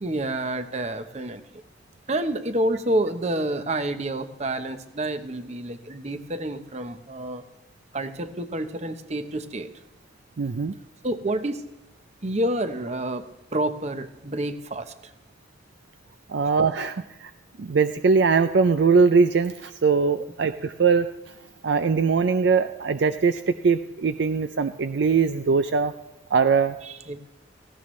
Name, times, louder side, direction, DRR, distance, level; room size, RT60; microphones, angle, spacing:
voice 1, 0.0-1.4 2.1-7.4 7.9-9.7 11.0-11.6 12.2-13.2 13.5-14.9 26.8-27.2, right 1 dB, 35° right, 9 dB, 0.8 m, -28 dB
voice 2, 10.4-10.7 16.3-17.3 17.6-21.1 21.6-25.9 26.3-26.8, right 5 dB, 60° right, 9 dB, 0.4 m, -21 dB
17.5 x 15.5 x 3.2 m, 1.0 s
head